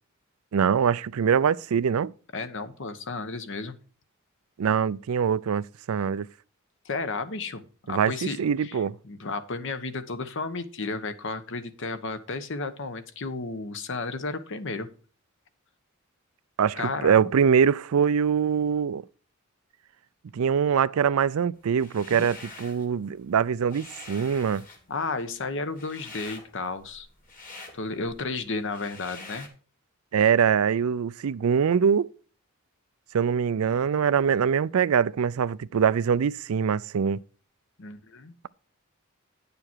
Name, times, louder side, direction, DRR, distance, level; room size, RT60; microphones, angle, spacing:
voice 1, 0.5-2.1 4.6-6.3 7.9-9.0 16.6-19.0 20.3-24.6 30.1-32.1 33.1-37.2, right 7 dB, 90° right, 0.4 m, -23 dB
voice 2, 2.3-3.8 6.8-8.8 9.0-14.9 16.7-17.3 22.1-22.3 24.9-27.1 27.7-29.5 37.8-38.3, left 3 dB, 65° left, 1.0 m, -33 dB
sound 1, 21.7-22.9 23.3-29.5, left 3 dB, 40° left, 2.3 m, -46 dB
9.7 x 6.9 x 4.5 m
head